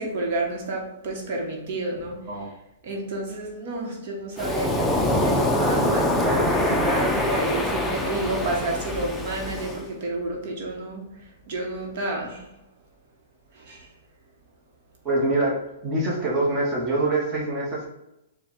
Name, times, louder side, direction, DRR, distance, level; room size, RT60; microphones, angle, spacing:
voice 1, 0.0-2.2 2.8-11.1 11.5-12.4 13.5-13.9, right 2 dB, 55° right, 0 dB, 1.0 m, -30 dB
Waves surf, 4.4-9.8, left 1 dB, 5° left, 0.5 m, -24 dB
voice 2, 15.0-17.9, right 2 dB, 20° right, -4 dB, 1.0 m, -25 dB
4.6 x 2.2 x 3.6 m, 0.87 s
hypercardioid pair, 145°, 0 cm